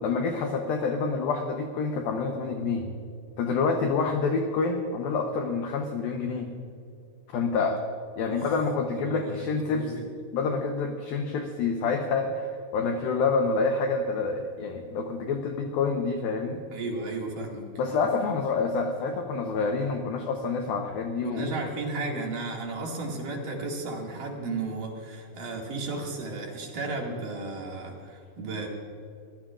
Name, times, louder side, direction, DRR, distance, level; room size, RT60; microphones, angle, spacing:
voice 1, 0.0-2.9 3.4-6.5 7.3-7.8 8.2-9.9 10.3-16.6 17.8-21.5, left 4 dB, 80° left, 4 dB, 2.1 m, -27 dB
voice 2, 8.9-9.5 9.7-10.1 16.7-17.7 21.2-28.7, right 3 dB, 50° right, -1 dB, 3.2 m, -34 dB
24.0 x 16.5 x 2.5 m, 2.5 s
omnidirectional pair, 5.5 m